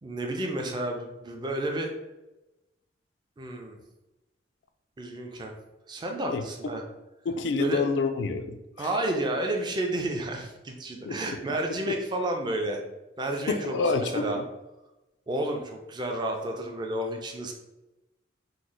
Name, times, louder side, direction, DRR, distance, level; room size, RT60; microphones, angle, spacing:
voice 1, 0.0-1.9 3.4-3.8 5.0-5.5 5.9-6.8 7.6-7.9 8.8-12.8 13.2-14.4 15.3-17.5, right 1 dB, 25° right, 2 dB, 0.4 m, -31 dB
voice 2, 7.3-8.9 11.1-11.4 13.5-14.4, left 3 dB, 80° left, 8 dB, 0.3 m, -28 dB
3.0 x 2.0 x 3.8 m, 1.0 s
head